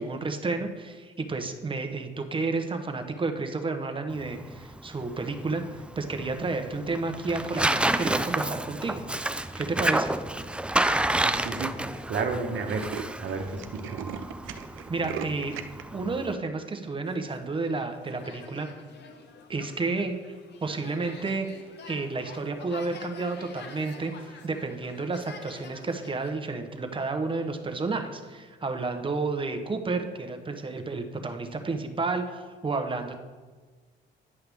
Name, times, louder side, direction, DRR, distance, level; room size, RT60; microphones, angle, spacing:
voice 1, 0.0-5.6 6.0-9.0 9.6-10.1 14.9-15.6 15.9-18.7 19.5-20.3 20.6-33.1, right 3 dB, 25° right, 6 dB, 0.9 m, -31 dB
Tearing, 4.1-16.3, right 1 dB, 5° right, 0.3 m, -30 dB
Tools, 10.2-10.3 10.8-10.9 11.1-11.2 11.5-11.7 12.0-12.1 12.3-15.8, right 8 dB, 90° right, 0.5 m, -39 dB
voice 2, 11.2-14.0, right 4 dB, 65° right, 4 dB, 1.1 m, -32 dB
sound 1, 17.1-26.3, left 4 dB, 60° left, 1.0 m, -48 dB
9.7 x 5.7 x 3.5 m, 1.4 s
cardioid pair, 90°, 20 cm